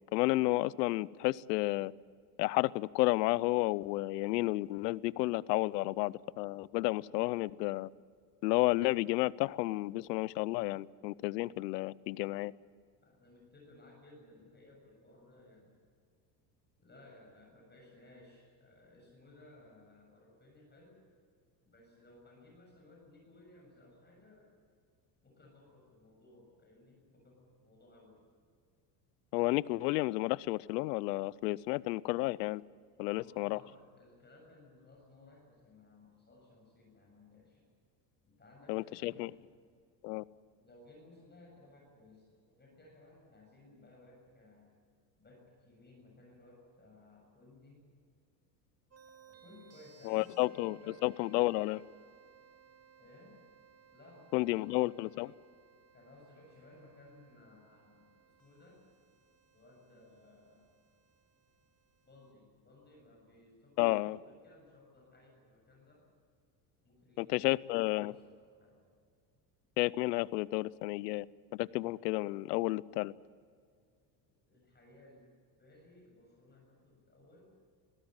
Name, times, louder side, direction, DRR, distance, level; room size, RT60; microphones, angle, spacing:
voice 1, 0.1-1.9 2.4-7.9 8.4-12.5 29.3-32.6 33.0-33.6 38.7-39.3 40.0-40.2 50.0-51.8 54.3-55.3 63.8-64.2 67.2-68.1 69.8-71.3 71.5-73.1, left 20 dB, 85° left, 22 dB, 0.7 m, -31 dB
voice 2, 13.0-15.8 16.8-21.1 21.6-24.5 25.2-28.3 33.1-37.7 38.2-39.5 40.1-44.7 45.2-47.9 49.3-51.6 53.0-53.4 53.9-54.9 55.9-58.8 59.5-60.7 62.1-66.1 66.8-68.9 74.3-75.3 75.6-77.6, left 2 dB, 20° left, 0 dB, 7.2 m, -59 dB
sound 1, 48.9-62.3, right 8 dB, 30° right, 2.6 m, -63 dB
22.5 x 16.5 x 9.0 m, 2.1 s
supercardioid pair, 85°, 48 cm